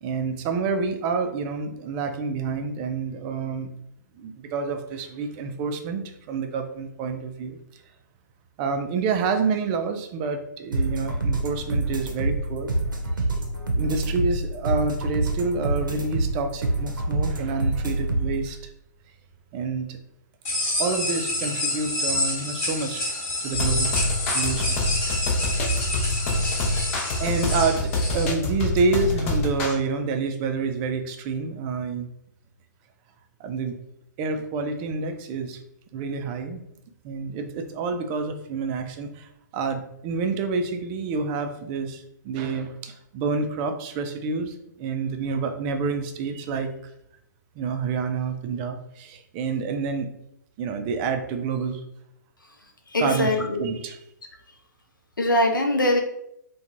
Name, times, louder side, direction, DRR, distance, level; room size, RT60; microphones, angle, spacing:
voice 1, 0.0-3.7 4.2-7.8 8.6-12.7 13.8-18.7 19.5-20.0 20.8-23.1 23.4-23.9 24.3-24.8 25.7-25.9 27.2-32.1 33.4-33.8 34.2-35.6 35.9-36.6 37.0-46.7 47.6-50.1 50.6-51.8 53.0-53.3 53.6-54.0, right 4 dB, 30° right, 6 dB, 0.3 m, -28 dB
sound 1, 10.7-18.5, right 2 dB, 80° right, 0.6 m, -26 dB
sound 2, 20.4-28.3, left 1 dB, 25° left, 1.0 m, -28 dB
sound 3, 23.5-29.7, left 2 dB, 45° left, 0.6 m, -26 dB
voice 2, 52.9-53.7 55.2-56.0, left 1 dB, 85° left, 2 dB, 0.6 m, -22 dB
2.4 x 2.3 x 2.9 m, 0.79 s
figure-of-eight pair, 120°, 10 cm